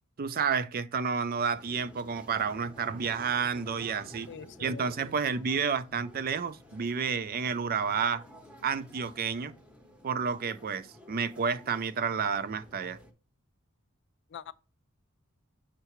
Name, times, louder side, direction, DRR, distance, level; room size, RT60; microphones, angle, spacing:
voice 1, 0.2-4.3 4.6-8.2 8.6-9.5 10.0-13.0, right 6 dB, 45° right, 0.4 m, -30 dB
sound 1, 1.5-13.1, equal, 5° right, 0.8 m, -52 dB
voice 2, 4.3-4.9 14.3-14.5, left 7 dB, 55° left, 0.4 m, -43 dB
6.7 x 5.7 x 3.0 m
head